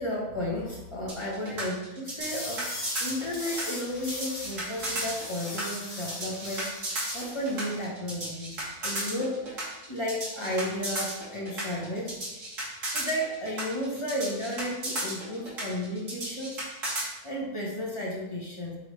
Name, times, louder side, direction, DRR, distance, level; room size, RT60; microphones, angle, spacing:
voice 1, 0.0-6.7 7.1-9.6 9.9-12.2 12.9-16.6 17.2-18.8, left 1 dB, 20° left, -4 dB, 1.0 m, -33 dB
sound 1, 1.1-17.1, right 1 dB, 55° right, 2.1 m, -34 dB
sound 2, 2.2-7.9, left 1 dB, 45° left, 1.7 m, -39 dB
8.1 x 3.6 x 3.2 m, 1.0 s
omnidirectional pair, 1.7 m